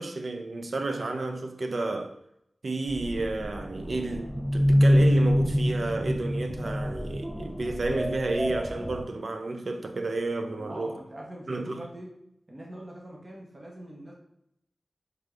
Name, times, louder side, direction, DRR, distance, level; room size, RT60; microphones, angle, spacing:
voice 1, 0.0-2.1 2.6-11.0 11.5-11.9, right 2 dB, 70° right, 0.4 m, -31 dB
sound 1, 2.9-9.0, equal, ahead, 0.3 m, -26 dB
voice 2, 10.6-12.1 12.5-14.1, right 1 dB, 40° right, 1.0 m, -43 dB
4.6 x 3.3 x 2.5 m
wide cardioid pair, 55°, 0 cm